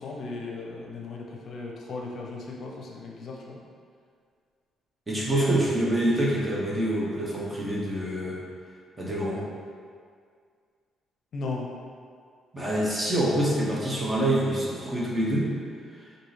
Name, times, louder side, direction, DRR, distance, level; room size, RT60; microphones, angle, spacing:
voice 1, 0.0-3.6 5.3-5.6 11.3-11.7, left 2 dB, 60° left, -1 dB, 0.6 m, -36 dB
voice 2, 5.1-8.4 9.0-9.4 12.5-15.5, right 1 dB, 20° right, -4 dB, 1.0 m, -26 dB
5.3 x 2.6 x 3.2 m, 2.1 s
cardioid pair, 90°, 0 cm